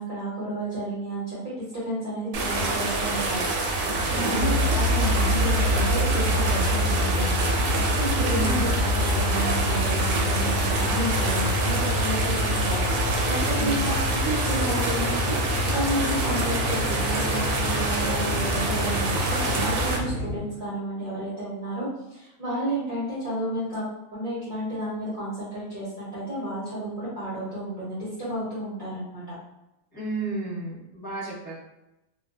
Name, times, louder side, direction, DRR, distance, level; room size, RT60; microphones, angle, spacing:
voice 1, 0.0-1.4 1.7-3.7 4.1-7.4 7.7-23.8 24.1-29.2, right 1 dB, 45° right, -10 dB, 0.7 m, -31 dB
sound 1, 2.3-20.0, right 2 dB, 70° right, 0.9 m, -27 dB
voice 2, 4.1-4.6 8.2-8.7 13.5-13.7 29.9-31.6, right 2 dB, 20° left, -11 dB, 0.9 m, -32 dB
sound 2, 4.4-20.4, left 1 dB, 60° left, 0.9 m, -27 dB
2.4 x 2.3 x 2.3 m, 0.92 s
omnidirectional pair, 1.5 m